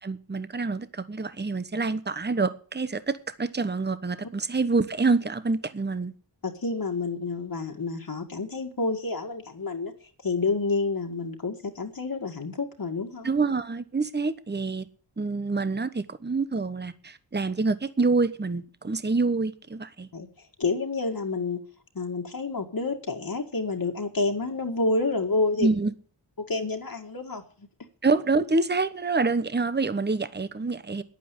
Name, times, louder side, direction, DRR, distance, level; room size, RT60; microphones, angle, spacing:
voice 1, 0.0-6.1 13.2-14.9 15.2-20.1 25.6-25.9 28.0-31.0, right 3 dB, 25° right, 1.0 m, -26 dB
voice 2, 6.4-9.9 10.2-13.3 20.1-21.6 21.9-25.7 26.4-27.7, left 3 dB, 50° left, 2.0 m, -29 dB
10.5 x 9.3 x 8.4 m
wide cardioid pair, 65°, 44 cm